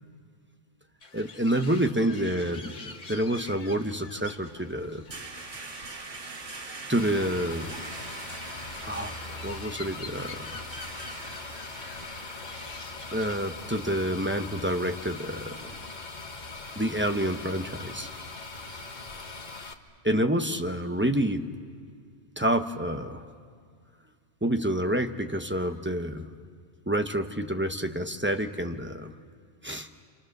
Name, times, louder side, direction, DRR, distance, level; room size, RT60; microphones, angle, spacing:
sound 1, 1.0-13.4, left 4 dB, 80° left, 2.0 m, -47 dB
voice 1, 1.1-5.0 6.9-7.9 8.8-10.7 13.1-15.8 16.8-18.1 20.0-21.5 22.4-23.2 24.4-26.3 26.9-29.1 29.6-29.9, right 1 dB, 10° right, 6 dB, 0.8 m, -28 dB
sound 2, 4.3-15.9, right 3 dB, 75° right, 1.9 m, -44 dB
sound 3, 7.0-19.7, left 3 dB, 40° left, 1.4 m, -41 dB
29.5 x 27.5 x 6.6 m, 2.1 s
omnidirectional pair, 1.2 m